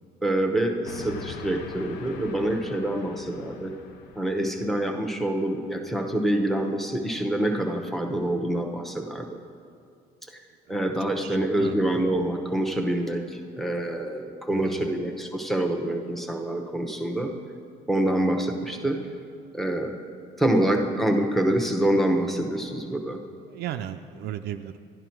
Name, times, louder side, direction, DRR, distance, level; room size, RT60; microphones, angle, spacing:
voice 1, 0.2-3.7 4.2-9.3 10.3-10.4 10.7-17.3 17.9-19.0 19.5-20.0 20.4-23.2, right 1 dB, ahead, 3 dB, 0.9 m, -26 dB
Train, 0.8-4.8, left 6 dB, 85° left, 0.7 m, -42 dB
voice 2, 11.2-11.8 14.5-14.9 23.5-24.8, right 11 dB, 75° right, 7 dB, 0.4 m, -35 dB
11.5 x 11.0 x 4.5 m, 2.3 s
cardioid pair, 110°, 17 cm